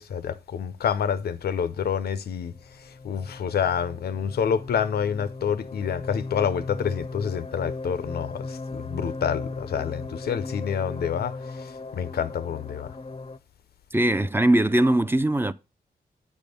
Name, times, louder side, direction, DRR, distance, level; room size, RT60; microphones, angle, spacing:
voice 1, 0.0-2.5 3.0-11.4 11.9-12.9, left 7 dB, 80° left, 0.6 m, -28 dB
sound 1, 2.6-13.4, left 3 dB, 35° left, 0.6 m, -37 dB
voice 2, 13.9-15.5, right 1 dB, 15° right, 0.5 m, -21 dB
8.4 x 3.6 x 5.3 m
cardioid pair, 55°, 16 cm